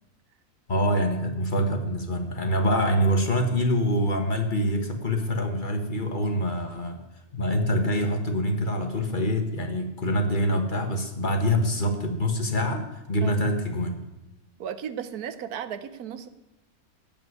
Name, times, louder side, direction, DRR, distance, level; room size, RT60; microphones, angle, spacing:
voice 1, 0.7-7.0 7.3-14.0, equal, 35° left, 5 dB, 1.5 m, -25 dB
voice 2, 14.6-16.3, right 8 dB, 80° right, 12 dB, 1.3 m, -35 dB
16.0 x 5.4 x 9.4 m, 0.99 s
omnidirectional pair, 1.6 m